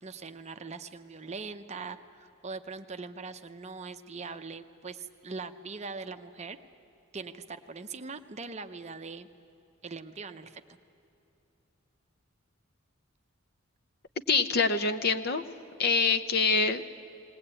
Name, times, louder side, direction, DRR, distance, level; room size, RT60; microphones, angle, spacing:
voice 1, 0.0-6.6 7.1-9.3 9.8-10.6, right 4 dB, 30° right, 9 dB, 0.7 m, -41 dB
voice 2, 14.3-15.4 15.8-17.0, left 4 dB, 50° left, 10 dB, 0.8 m, -25 dB
20.0 x 19.0 x 8.8 m, 2.8 s
head